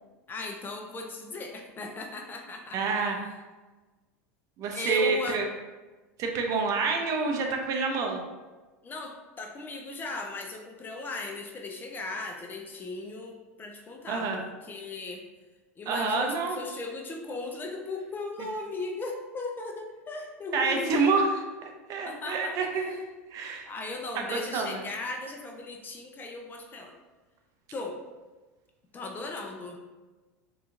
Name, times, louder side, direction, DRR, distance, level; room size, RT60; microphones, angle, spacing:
voice 1, 0.3-2.8 4.7-5.4 8.8-15.2 15.8-21.1 22.0-22.8 23.7-26.9 27.7-28.0 28.9-29.8, left 3 dB, 25° left, 2 dB, 0.4 m, -37 dB
voice 2, 2.7-3.2 4.6-5.5 6.2-8.2 14.1-14.4 15.9-16.6 20.5-21.3 21.9-23.1 23.3-23.7 24.1-24.8, right 4 dB, 45° right, 2 dB, 0.5 m, -27 dB
2.9 x 2.3 x 2.5 m, 1.2 s
hypercardioid pair, 95°, 8 cm